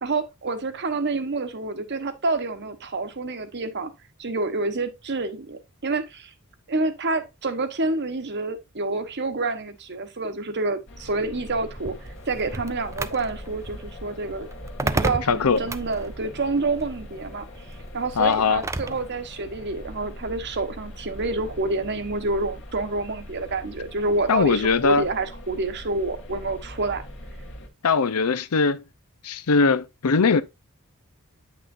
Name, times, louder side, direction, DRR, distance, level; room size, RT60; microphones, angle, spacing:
voice 1, 0.0-3.9 4.2-6.3 6.7-11.9 12.3-14.5 14.8-17.5 17.9-27.0, right 3 dB, 50° right, 1.1 m, -28 dB
sound 1, 10.9-27.7, left 1 dB, 55° left, 1.8 m, -41 dB
sound 2, 11.8-19.1, right 2 dB, 15° right, 0.4 m, -33 dB
voice 2, 15.3-15.6 18.2-18.6 24.3-25.0 27.8-28.8 29.2-30.4, left 4 dB, 80° left, 0.6 m, -20 dB
9.1 x 6.2 x 2.5 m
head